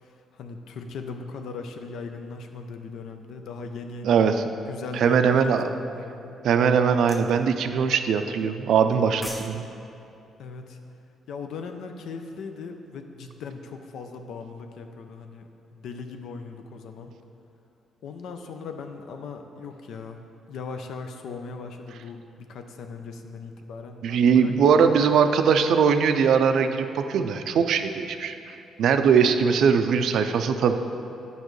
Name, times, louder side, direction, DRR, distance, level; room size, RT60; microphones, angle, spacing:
voice 1, 0.0-6.3 10.4-10.8 11.3-15.4 15.7-17.1 18.0-20.2 20.5-24.5 24.8-24.9, left 4 dB, 75° left, 6 dB, 0.5 m, -39 dB
voice 2, 4.0-4.4 4.9-5.6 6.4-9.7 24.0-30.8, right 6 dB, 75° right, 8 dB, 0.4 m, -21 dB
sound 1, 7.1-7.3 8.9-9.5 9.8-10.0, left 1 dB, 10° left, 0.6 m, -38 dB
8.8 x 5.3 x 3.1 m, 2.7 s
cardioid pair, 90°, 0 cm